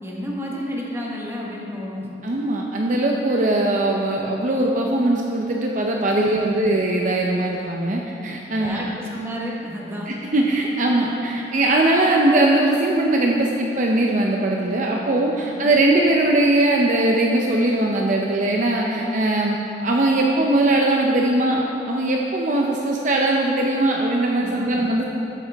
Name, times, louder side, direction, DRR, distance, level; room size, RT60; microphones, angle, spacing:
voice 1, 0.0-2.1 6.2-6.5 8.6-10.1 15.4-15.7 24.4-24.8, equal, 15° right, -3 dB, 1.3 m, -31 dB
voice 2, 2.2-8.8 10.1-25.0, right 2 dB, 45° right, 0 dB, 0.6 m, -20 dB
13.0 x 8.5 x 3.5 m, 2.9 s
head